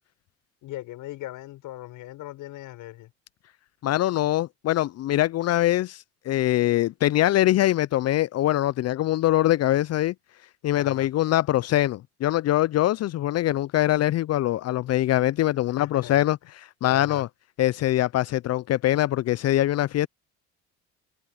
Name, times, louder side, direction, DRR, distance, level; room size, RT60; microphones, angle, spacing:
voice 1, 0.6-3.1 10.7-11.1 15.8-16.5 16.8-17.3, left 16 dB, 65° left, 6.4 m, -40 dB
voice 2, 3.8-10.1 10.6-16.4 16.8-17.3 17.6-20.1, left 14 dB, 50° left, 0.6 m, -23 dB
hypercardioid pair, 70°, 34 cm